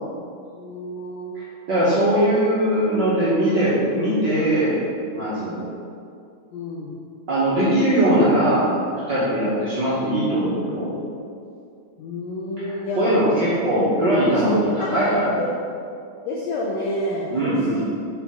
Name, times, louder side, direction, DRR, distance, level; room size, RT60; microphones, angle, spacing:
voice 1, 0.5-1.4 6.5-7.0 12.0-13.1 14.4-15.5 16.2-18.0, left 1 dB, 90° left, -3 dB, 1.5 m, -29 dB
voice 2, 1.3-5.6 7.3-10.9 12.6-15.3 17.3-17.8, right 1 dB, 55° right, -11 dB, 1.2 m, -21 dB
5.9 x 5.4 x 3.7 m, 2.4 s
omnidirectional pair, 3.8 m